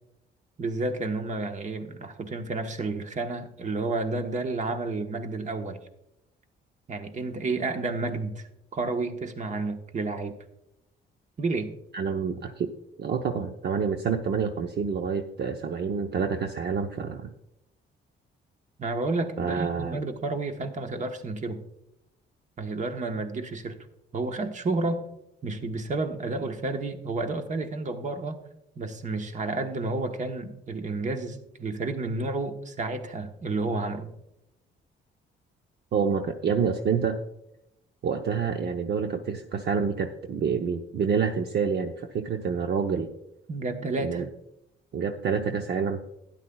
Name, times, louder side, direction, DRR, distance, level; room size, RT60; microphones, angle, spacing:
voice 1, 0.6-5.8 6.9-10.3 11.4-11.7 18.8-21.6 22.6-23.8 24.1-25.0 25.4-28.4 28.8-34.1 43.5-44.2, right 3 dB, 40° right, 6 dB, 1.2 m, -31 dB
voice 2, 11.9-12.7 13.0-17.3 19.4-20.0 35.9-37.2 38.0-43.1 44.0-44.3 44.9-46.0, right 6 dB, 55° right, 5 dB, 0.7 m, -28 dB
12.5 x 10.0 x 2.3 m, 0.85 s
cardioid pair, 90°, 20 cm